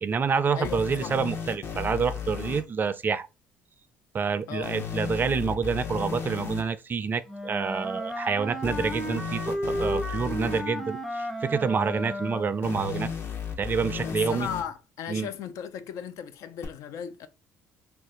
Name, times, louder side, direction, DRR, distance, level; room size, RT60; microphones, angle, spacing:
voice 1, 0.0-3.3 4.1-13.1 13.6-14.5 15.1-15.3, right 5 dB, 35° right, 0.4 m, -28 dB
voice 2, 0.6-1.2 4.5-4.8 14.0-17.3, left 8 dB, 65° left, 0.5 m, -36 dB
sound 1, 0.6-2.6 4.6-6.6 8.6-10.6 12.6-14.6 16.6-16.7, left 7 dB, 45° left, 0.9 m, -34 dB
Wind instrument woodwind instrument, 7.3-12.7, equal, ahead, 0.7 m, -33 dB
2.5 x 2.2 x 3.6 m
supercardioid pair, 70°, 6 cm